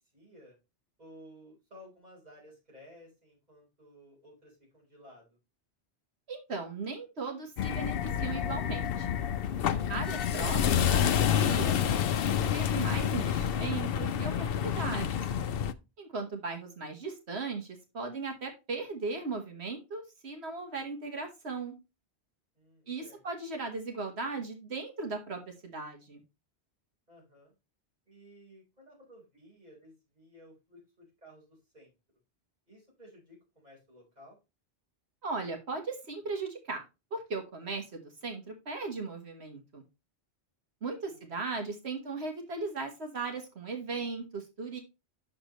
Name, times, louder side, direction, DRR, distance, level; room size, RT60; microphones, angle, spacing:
voice 1, 0.1-0.6 1.0-5.4 22.5-23.2 27.1-27.5 28.1-31.9 32.7-34.4 41.1-41.4, equal, 35° right, -3 dB, 4.6 m, -55 dB
voice 2, 6.3-7.9 8.2-9.2 9.9-15.2 16.0-21.7 22.9-26.2 35.2-36.8 37.1-39.8 40.8-44.8, right 3 dB, 70° right, 4 dB, 1.6 m, -37 dB
sound 1, 7.6-15.7, left 9 dB, 60° left, 0.8 m, -28 dB
8.8 x 6.6 x 3.0 m, 0.26 s
omnidirectional pair, 1.1 m